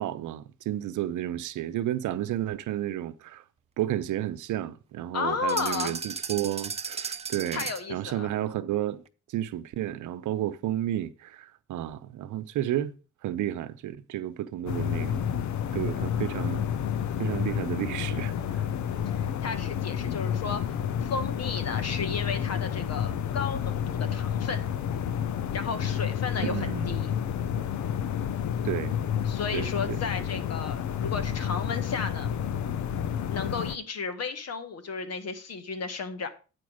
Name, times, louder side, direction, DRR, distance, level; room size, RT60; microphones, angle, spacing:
voice 1, 0.0-3.4 3.8-9.0 9.3-12.9 13.2-15.3 15.7-16.7 17.2-18.3 26.4-27.0 28.6-29.0 29.5-30.0, right 12 dB, 75° right, 0.8 m, -32 dB
voice 2, 5.1-6.0 7.5-8.3 19.1-24.6 25.5-27.1 29.2-32.3 33.3-36.3, left 5 dB, 55° left, 1.6 m, -33 dB
sound 1, 5.5-8.0, right 5 dB, 20° right, 0.6 m, -35 dB
sound 2, 14.7-33.8, left 9 dB, 70° left, 0.8 m, -30 dB
9.5 x 4.6 x 6.3 m
cardioid pair, 90°, 30 cm